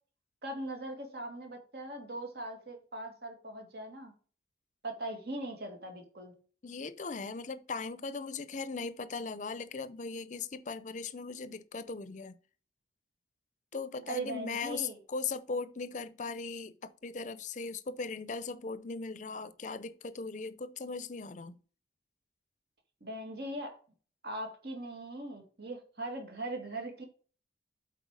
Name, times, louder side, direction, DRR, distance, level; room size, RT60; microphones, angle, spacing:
voice 1, 0.4-4.1 4.8-6.3 14.1-15.0 23.0-23.8 24.2-27.0, right 1 dB, 60° right, 2.0 m, -40 dB
voice 2, 6.6-12.3 13.7-21.6, left 4 dB, 45° left, 0.5 m, -39 dB
8.1 x 4.3 x 4.7 m
head